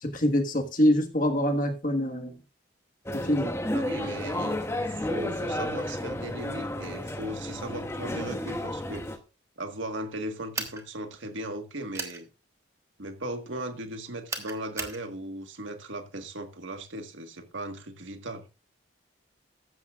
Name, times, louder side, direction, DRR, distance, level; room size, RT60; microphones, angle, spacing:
voice 1, 0.0-2.3 3.2-3.6, equal, 45° left, 1.6 m, -25 dB
sound 1, 3.1-9.2, left 1 dB, 15° left, 0.9 m, -32 dB
voice 2, 3.7-9.2 9.6-12.3 13.0-18.4, right 1 dB, 80° right, 1.6 m, -37 dB
sound 2, 10.5-10.8 11.9-12.2 14.3-15.0, right 3 dB, 15° right, 1.3 m, -34 dB
14.5 x 11.0 x 2.4 m
head